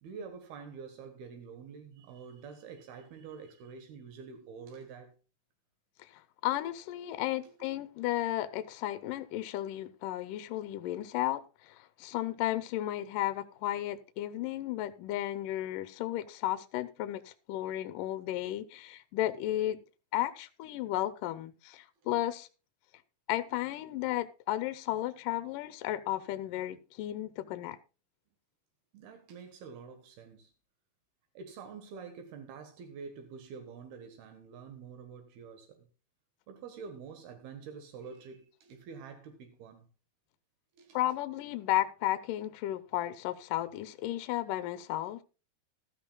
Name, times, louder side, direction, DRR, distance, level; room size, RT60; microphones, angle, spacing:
voice 1, 0.0-5.1 7.4-7.7 28.9-30.5 31.3-35.9 36.5-39.9 40.7-41.2, right 5 dB, 80° right, 3.3 m, -47 dB
voice 2, 6.0-19.8 20.1-22.5 23.3-27.8 40.9-45.2, left 14 dB, 75° left, 2.1 m, -34 dB
15.5 x 13.0 x 2.3 m
omnidirectional pair, 4.4 m